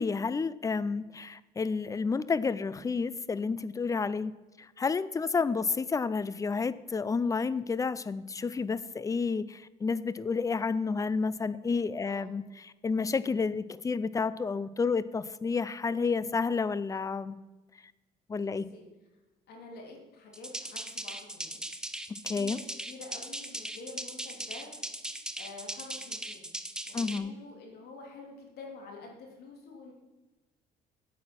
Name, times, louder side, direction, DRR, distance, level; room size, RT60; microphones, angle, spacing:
voice 1, 0.0-17.4 18.3-18.7 22.2-22.6 26.9-27.3, left 4 dB, 20° left, 16 dB, 0.5 m, -30 dB
voice 2, 18.4-18.9 19.5-21.6 22.3-22.6 22.9-24.7 25.4-26.5 26.9-29.9, left 3 dB, 70° left, 0 dB, 3.0 m, -48 dB
sound 1, 20.3-27.2, right 1 dB, 5° right, 0.8 m, -39 dB
8.8 x 8.3 x 6.0 m, 1.1 s
cardioid pair, 110°, 17 cm